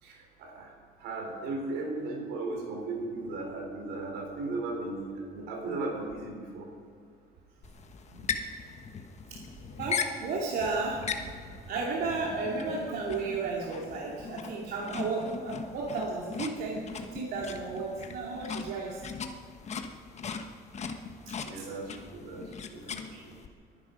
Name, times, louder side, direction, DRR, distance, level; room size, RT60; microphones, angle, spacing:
voice 1, 0.0-6.7 21.3-23.3, right 2 dB, 90° right, 1 dB, 4.0 m, -37 dB
sound 1, 7.6-23.5, left 5 dB, 40° left, 1.2 m, -39 dB
voice 2, 9.8-11.0 11.7-19.0 21.5-21.6 22.9-23.2, right 3 dB, 70° right, -4 dB, 2.6 m, -33 dB
23.5 x 10.5 x 5.3 m, 2.1 s
cardioid pair, 110°, 17 cm